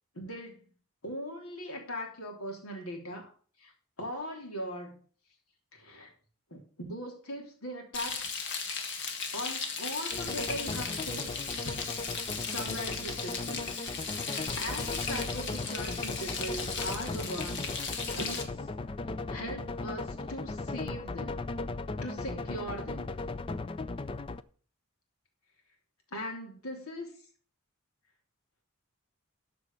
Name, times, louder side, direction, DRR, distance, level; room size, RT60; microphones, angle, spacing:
voice 1, 0.1-0.6 1.0-3.3 3.6-3.7 4.0-5.0 5.7-6.1 6.5-8.3 9.3-11.3 12.4-13.7 14.2-17.7 18.1-18.7 19.3-21.4 22.0-23.1 26.1-27.1, equal, 75° left, 3 dB, 3.2 m, -40 dB
Frying (food), 7.9-18.4, left 5 dB, 50° left, 1.8 m, -36 dB
sound 1, 10.1-24.4, left 3 dB, 25° left, 0.4 m, -37 dB
13.0 x 5.1 x 6.7 m, 0.43 s
head